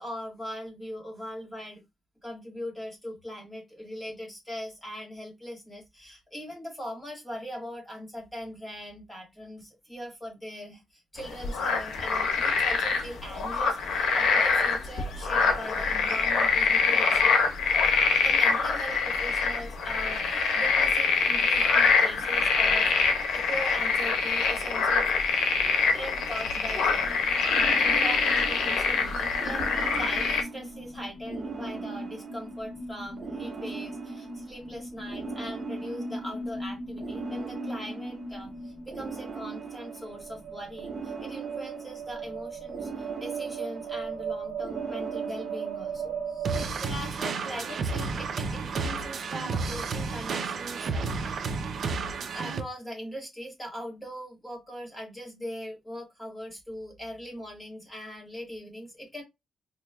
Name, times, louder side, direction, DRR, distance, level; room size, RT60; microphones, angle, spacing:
voice 1, 0.0-1.8 2.2-17.3 18.2-25.1 25.9-27.1 27.7-51.6 52.3-59.2, equal, 5° left, -1 dB, 1.6 m, -40 dB
sound 1, 11.2-30.4, left 5 dB, 85° left, 0.9 m, -25 dB
sound 2, 27.0-46.7, right 4 dB, 40° right, 0.8 m, -37 dB
sound 3, 46.4-52.6, right 4 dB, 55° right, 0.5 m, -31 dB
4.2 x 3.0 x 2.2 m, 0.20 s
cardioid pair, 150°, 0 cm